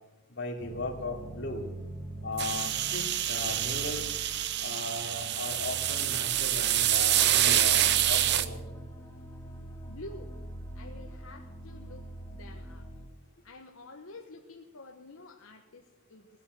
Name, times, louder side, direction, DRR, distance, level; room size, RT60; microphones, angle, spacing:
voice 1, 0.3-1.7 2.2-4.1 4.6-8.8, left 2 dB, 55° left, 1 dB, 3.0 m, -37 dB
sound 1, 0.6-13.1, right 1 dB, 10° left, 3.9 m, -44 dB
sound 2, 2.4-8.5, right 12 dB, 55° right, 0.7 m, -27 dB
voice 2, 9.9-10.4 10.7-12.0 12.3-12.9 13.4-16.3, left 2 dB, 75° left, 2 dB, 1.2 m, -48 dB
19.0 x 9.8 x 7.7 m, 1.1 s
head